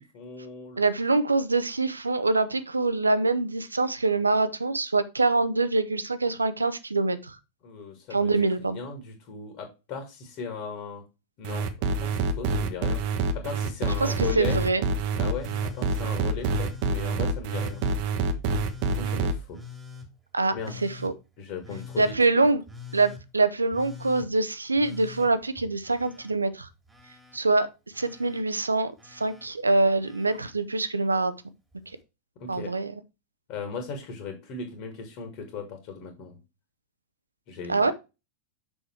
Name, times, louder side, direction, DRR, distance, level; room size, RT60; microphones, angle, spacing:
voice 1, 0.1-0.8 7.6-11.0 11.4-11.7 12.0-14.6 15.2-17.8 18.9-19.6 20.5-21.1 21.4-22.1 32.4-32.7 33.5-36.4 37.5-37.9, left 5 dB, 45° left, 2.0 m, -37 dB
voice 2, 0.8-7.4 8.1-8.8 14.0-14.8 20.3-20.5 20.8-21.1 22.0-22.6 22.9-26.7 27.3-27.7 28.0-31.3 32.5-33.0 37.7-37.9, right 3 dB, 80° right, 0.7 m, -24 dB
sound 1, 11.4-19.3, right 4 dB, 45° right, 0.9 m, -26 dB
Telephone, 15.3-15.9 16.4-16.9 17.4-18.0 18.5-19.0 19.5-20.1 20.6-21.1 21.6-22.2 22.7-23.2 23.7-24.3 24.8-26.3 26.6-27.4 27.9-28.4 29.0-29.5 30.0-30.5 31.7-31.8, left 5 dB, 10° right, 2.2 m, -44 dB
6.3 x 5.0 x 4.5 m
figure-of-eight pair, 90°, 0 cm